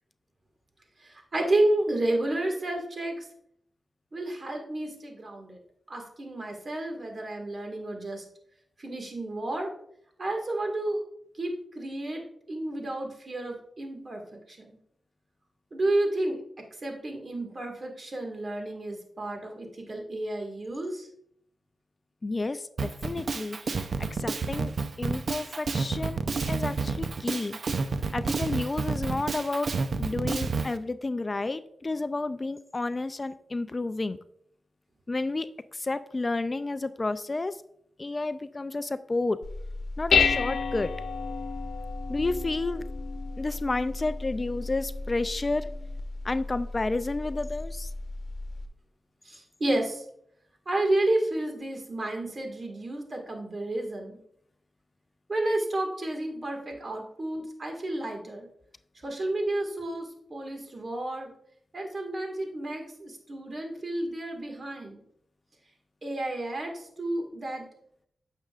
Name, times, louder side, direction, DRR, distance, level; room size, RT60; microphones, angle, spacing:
voice 1, 1.0-3.3 4.1-5.6 5.9-8.2 8.8-9.7 10.2-11.0 11.3-12.2 12.5-14.8 15.7-16.4 16.8-21.1 49.2-50.0 50.7-54.2 55.3-58.5 59.0-61.3 61.7-65.0 66.0-67.7, right 1 dB, 45° right, 3 dB, 1.8 m, -31 dB
voice 2, 22.2-24.7 25.0-26.2 26.5-27.6 28.1-34.2 35.1-37.6 38.0-39.4 40.0-40.9 42.1-42.9 43.4-45.7 46.2-47.9, left 2 dB, 35° left, 13 dB, 0.3 m, -31 dB
Drum kit, 22.8-30.7, right 4 dB, 60° right, 0.6 m, -30 dB
Dishes pots and pans, 39.4-48.7, left 5 dB, 85° left, 0.8 m, -31 dB
9.5 x 6.6 x 2.4 m, 0.71 s
cardioid pair, 70°, 0 cm